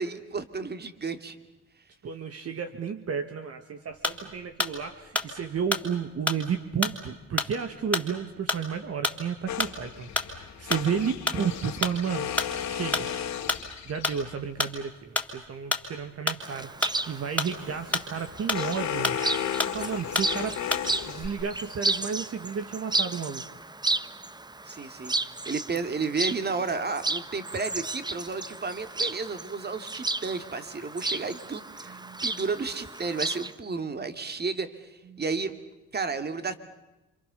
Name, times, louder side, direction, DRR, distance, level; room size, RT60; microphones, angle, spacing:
voice 1, 0.0-1.4 24.7-25.1 25.5-35.5 35.9-36.5, right 4 dB, 35° right, 10 dB, 2.6 m, -32 dB
voice 2, 2.0-12.3 12.7-13.1 13.9-19.5 19.7-20.6 21.1-23.4 31.9-32.2 35.1-35.2, right 7 dB, 50° right, 7 dB, 1.9 m, -32 dB
sound 1, 4.0-4.3 4.6-4.8 5.1-5.9 6.3-6.5 6.8-7.0 7.4-7.5 7.9-8.1 8.5-8.7 9.0-9.2 9.6-9.8 10.2-10.4 10.7-10.9 11.3-11.4 11.8-12.0 12.4-12.5 12.9-13.1 13.5-13.7 14.0-14.2 14.6-14.8 15.1-15.3 15.7-15.9 16.3-16.4 16.8-17.5 17.9-18.1 18.5-18.7 19.0-19.3 19.6-19.8 20.1-20.3 20.7-20.9 21.1-21.3, left 2 dB, 5° left, 3.5 m, -29 dB
sound 2, 9.5-14.4 17.4-21.7, left 9 dB, 65° left, 2.7 m, -34 dB
Chirp tweet, 16.4-33.5, right 2 dB, 15° right, 1.0 m, -33 dB
28.5 x 26.5 x 7.0 m, 1.0 s
cardioid pair, 90°, 30 cm